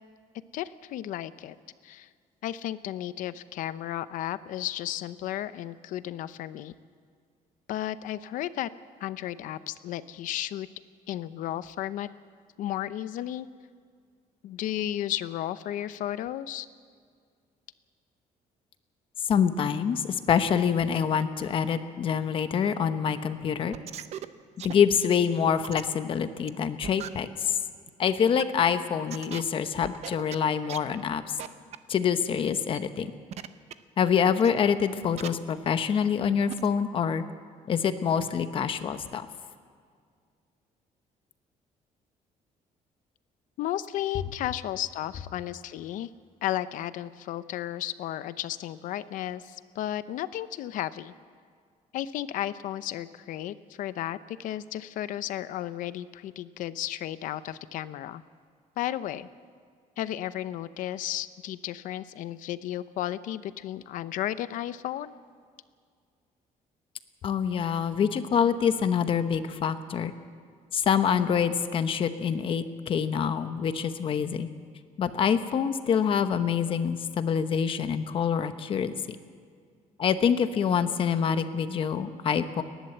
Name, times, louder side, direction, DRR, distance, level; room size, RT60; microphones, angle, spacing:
voice 1, 0.5-1.6 1.8-2.1 2.4-6.7 7.7-8.7 9.0-10.7 11.1-12.1 12.6-13.5 14.4-16.7 43.6-46.1 46.4-51.1 51.9-58.2 58.8-59.3 60.0-65.1, left 12 dB, 70° left, 14 dB, 0.7 m, -33 dB
voice 2, 19.3-23.7 24.6-27.6 28.0-31.3 31.9-33.1 34.0-37.2 37.7-39.3 67.2-70.1 70.7-74.5 75.0-79.2 80.0-82.6, left 7 dB, 40° left, 10 dB, 0.9 m, -26 dB
sound 1, 23.6-24.3 24.6-25.1 25.6-25.8 26.5-26.6 26.8-27.1 27.9-28.0 28.4-28.5 29.1-29.4 29.8-30.4 30.7-30.8 31.4-31.5 31.7-31.8 32.5-32.8 33.3-33.7 34.4-34.5 35.2-35.3 35.7-35.8 36.2-36.3 36.5-36.7, right 10 dB, 50° right, 0.7 m, -38 dB
29.0 x 11.5 x 7.9 m, 2.1 s
cardioid pair, 175°, 14 cm